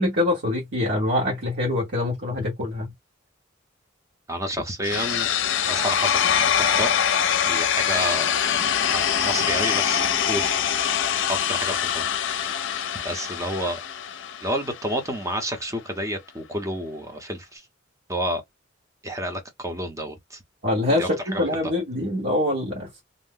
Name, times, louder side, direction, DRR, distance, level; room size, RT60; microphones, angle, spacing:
voice 1, 0.0-2.9 20.6-23.0, left 1 dB, 60° right, 1.2 m, -24 dB
voice 2, 4.3-5.3 5.7-8.3 8.9-10.6 11.3-12.1 13.0-13.8 14.4-17.7 18.1-18.4 19.0-20.4 21.0-21.4, equal, 15° right, 0.7 m, -30 dB
sound 1, 4.8-14.8, left 8 dB, 65° left, 0.5 m, -24 dB
2.5 x 2.0 x 3.7 m
head